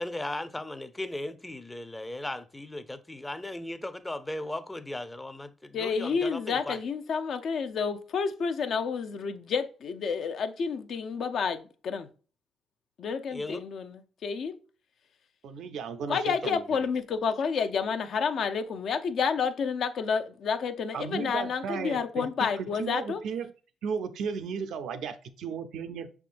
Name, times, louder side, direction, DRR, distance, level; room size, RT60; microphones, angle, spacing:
voice 1, 0.0-6.8 13.3-13.6 16.4-16.5, left 1 dB, 15° left, 0.5 m, -37 dB
voice 2, 5.7-12.1 13.0-14.6 16.1-23.2, left 6 dB, 65° left, 0.5 m, -30 dB
voice 3, 15.4-16.6 20.9-22.3 22.6-23.5 23.8-26.1, right 6 dB, 75° right, 0.5 m, -35 dB
5.8 x 3.6 x 2.5 m
cardioid pair, 90°, 0 cm